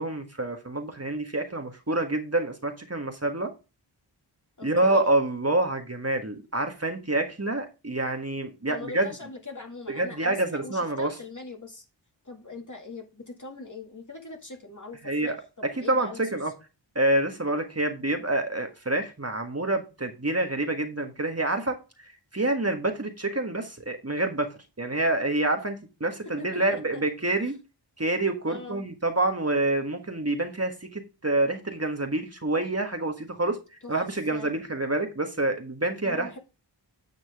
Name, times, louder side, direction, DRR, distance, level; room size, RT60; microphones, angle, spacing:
voice 1, 0.0-3.5 4.6-9.1 9.9-11.1 15.0-15.4 15.8-16.5 16.9-27.5 28.0-33.6 33.9-36.3, right 2 dB, 35° right, 5 dB, 1.5 m, -27 dB
voice 2, 4.6-5.1 8.7-11.9 12.2-16.5 26.4-27.0 27.4-27.5 28.5-28.9 33.8-34.0 34.3-34.5 36.0-36.4, left 3 dB, 40° left, 3 dB, 2.1 m, -42 dB
9.6 x 6.0 x 3.6 m, 0.29 s
wide cardioid pair, 40°, 45 cm